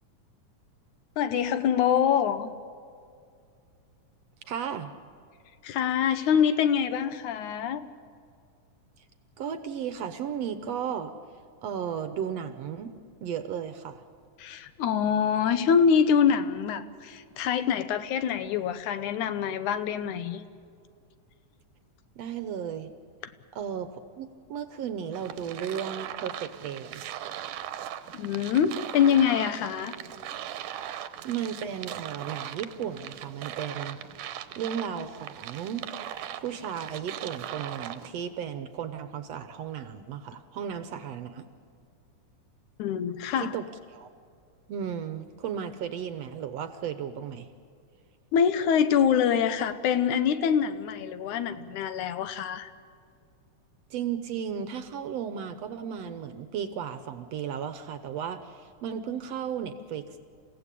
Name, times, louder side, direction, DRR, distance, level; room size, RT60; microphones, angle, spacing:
voice 1, 1.2-2.5 5.6-7.9 14.4-20.4 28.1-30.0 42.8-43.5 48.3-52.7, left 8 dB, 75° left, 11 dB, 2.4 m, -25 dB
voice 2, 4.4-4.9 9.4-11.1 11.6-12.9 13.2-14.0 22.2-22.9 23.5-27.1 31.2-34.3 34.6-35.9 36.4-41.5 43.4-43.6 43.9-44.1 44.7-47.5 53.9-60.2, right 8 dB, 65° right, 10 dB, 1.8 m, -35 dB
sound 1, 25.1-38.1, right 11 dB, 85° right, 2.5 m, -39 dB
29.0 x 16.5 x 8.4 m, 2.3 s
omnidirectional pair, 3.6 m